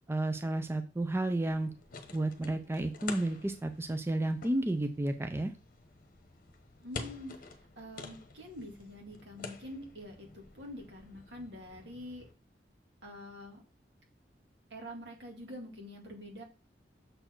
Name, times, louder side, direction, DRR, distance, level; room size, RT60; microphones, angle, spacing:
voice 1, 0.1-1.7 2.1-5.5, right 1 dB, 15° right, 8 dB, 0.4 m, -32 dB
sound 1, 1.4-12.3, left 4 dB, 50° left, 1.0 m, -49 dB
voice 2, 6.8-12.3 13.0-13.6 14.7-16.4, left 1 dB, 75° right, 0 dB, 2.2 m, -46 dB
6.6 x 4.3 x 4.5 m, 0.33 s
head